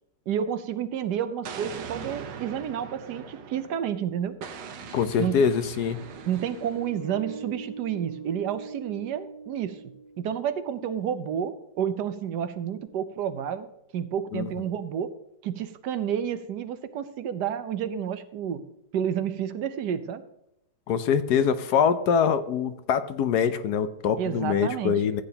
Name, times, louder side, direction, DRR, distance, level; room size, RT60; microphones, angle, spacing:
voice 1, 0.3-4.4 5.2-5.5 6.3-9.8 10.2-13.7 13.9-15.1 15.4-18.6 18.9-20.2 24.2-25.0, right 9 dB, 75° right, 11 dB, 1.3 m, -30 dB
Explosion, 1.4-3.9 4.4-7.0, right 7 dB, 90° right, 1.6 m, -41 dB
sound 1, 3.8-10.6, right 3 dB, 50° left, 1.1 m, -43 dB
voice 2, 4.9-6.0 14.3-14.5 20.9-25.2, left 7 dB, 70° left, 11 dB, 1.2 m, -24 dB
14.5 x 8.9 x 2.9 m, 0.82 s
omnidirectional pair, 1.9 m